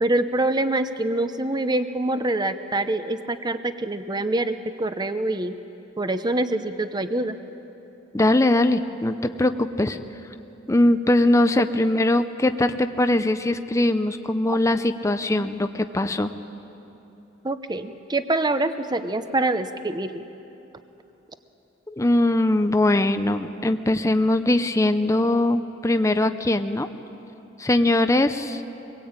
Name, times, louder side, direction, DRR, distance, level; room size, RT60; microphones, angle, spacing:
voice 1, 0.0-5.6 6.0-7.4 17.4-20.2, right 2 dB, 20° right, 10 dB, 0.8 m, -25 dB
voice 2, 8.1-10.0 10.7-16.3 22.0-26.9 27.6-28.6, left 1 dB, 15° left, 8 dB, 0.6 m, -21 dB
24.5 x 21.5 x 8.8 m, 2.9 s
head